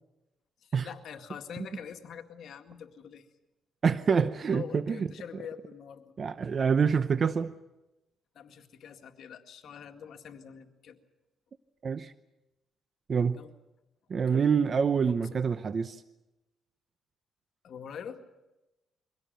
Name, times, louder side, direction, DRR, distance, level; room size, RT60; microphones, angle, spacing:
voice 1, 0.6-3.3 4.5-6.1 8.3-11.0 13.3-13.5 14.3-14.5 14.9-15.4 17.6-18.2, left 7 dB, 65° left, 5 dB, 2.0 m, -45 dB
voice 2, 3.8-5.1 6.2-7.5 11.8-12.1 13.1-13.4 14.1-16.0, right 6 dB, 45° right, 13 dB, 0.7 m, -26 dB
23.5 x 17.0 x 9.2 m, 1.0 s
cardioid pair, 90°, 0 cm